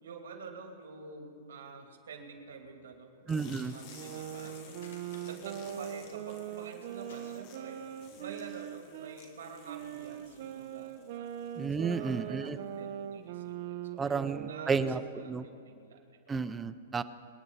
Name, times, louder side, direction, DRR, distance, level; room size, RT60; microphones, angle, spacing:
voice 1, 0.0-3.4 3.7-4.8 5.2-7.8 8.2-11.3 11.7-16.4, right 5 dB, 85° right, 2 dB, 2.8 m, -48 dB
sound 1, 3.3-12.8, left 5 dB, 40° left, 2.1 m, -56 dB
voice 2, 3.3-3.7 11.6-12.6 14.0-15.5 16.3-17.0, right 5 dB, 10° right, 12 dB, 0.5 m, -32 dB
sound 2, 3.9-9.2 9.7-15.3, right 10 dB, 50° right, 0.7 m, -41 dB
sound 3, 4.2-6.2 6.4-6.7 7.0-7.2 7.5-8.0 8.8-8.9, left 4 dB, 80° left, 3.0 m, -57 dB
25.5 x 9.9 x 4.2 m, 2.4 s
hypercardioid pair, 155°, 0 cm